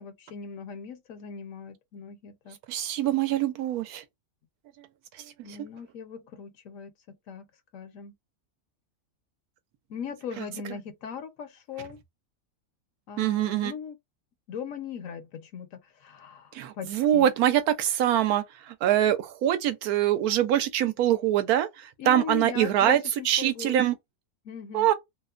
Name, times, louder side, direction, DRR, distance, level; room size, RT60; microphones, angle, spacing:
voice 1, 0.0-2.6 5.4-7.5 7.7-8.1 9.9-12.0 13.1-14.0 14.5-17.3 22.0-23.8 24.4-24.9, left 7 dB, 65° left, 1.0 m, -39 dB
voice 2, 2.7-4.0 13.2-13.7 16.5-18.4 18.8-21.7 22.1-23.0 23.3-23.9 24.7-24.9, right 11 dB, 80° right, 1.1 m, -23 dB
2.8 x 2.1 x 2.4 m
omnidirectional pair, 1.6 m